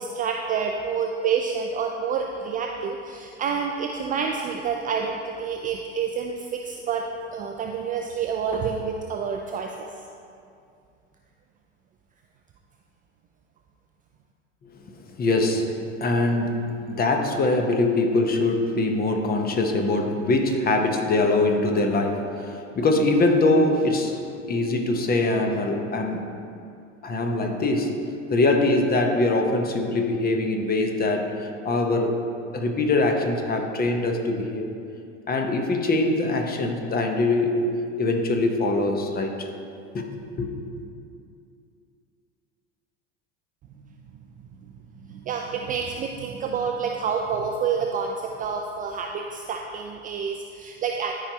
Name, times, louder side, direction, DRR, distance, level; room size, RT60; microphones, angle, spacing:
voice 1, 0.0-7.0 7.3-9.9 45.1-51.1, right 6 dB, 25° right, 2 dB, 0.4 m, -28 dB
voice 2, 14.8-15.7 16.0-26.3 27.0-27.9 28.3-32.2 32.5-34.7 35.3-37.6 38.0-39.5 39.9-40.5, left 2 dB, 25° left, 3 dB, 1.0 m, -23 dB
13.0 x 4.9 x 2.9 m, 2.5 s
figure-of-eight pair, 75°, 38 cm